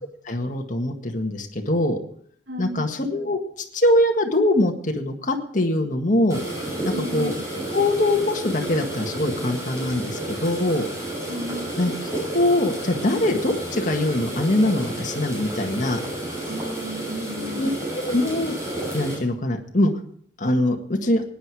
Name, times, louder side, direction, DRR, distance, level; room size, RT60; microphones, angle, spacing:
voice 1, 0.3-2.0 2.6-3.4 3.7-6.4 6.8-7.3 7.7-10.9 11.7-11.9 12.3-16.0 17.3-17.7 18.1-18.5 18.9-19.9 20.4-21.2, left 1 dB, 45° left, 3 dB, 1.8 m, -22 dB
voice 2, 2.5-2.9 6.9-7.5 11.3-11.7 16.5-17.7, equal, 80° right, -1 dB, 2.6 m, -33 dB
sound 1, 6.3-19.2, right 1 dB, 15° right, 6.9 m, -31 dB
17.0 x 10.0 x 4.8 m, 0.62 s
head